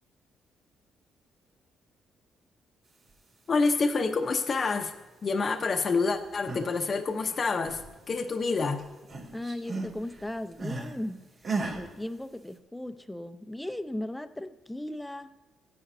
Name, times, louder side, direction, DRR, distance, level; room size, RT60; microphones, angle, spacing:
voice 1, 3.5-4.9 5.2-7.8 8.1-8.8, left 4 dB, 40° left, 4 dB, 0.8 m, -27 dB
sound 1, 6.2-6.8 7.1-8.5 8.8-11.0 11.4-11.8, right 3 dB, 50° right, 2.9 m, -36 dB
voice 2, 9.3-11.3 11.7-15.3, left 1 dB, 5° left, 10 dB, 0.6 m, -37 dB
16.0 x 10.0 x 2.7 m, 1.2 s
cardioid pair, 90°, 0 cm